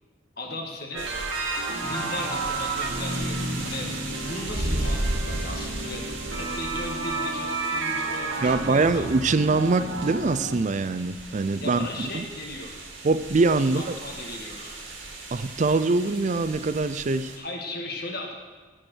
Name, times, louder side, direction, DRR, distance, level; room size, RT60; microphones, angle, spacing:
voice 1, 0.4-1.1 1.8-3.9 4.2-9.1 11.6-12.7 13.6-14.8 17.3-18.4, left 2 dB, 55° left, 1 dB, 1.5 m, -36 dB
sound 1, 0.9-10.6, right 3 dB, 90° right, 1.4 m, -31 dB
sound 2, 1.0-17.4, right 2 dB, 70° right, 2.1 m, -36 dB
voice 2, 8.4-12.3 13.0-14.0 15.3-17.3, right 3 dB, 40° right, 13 dB, 0.4 m, -23 dB
10.0 x 9.2 x 6.2 m, 1.3 s
head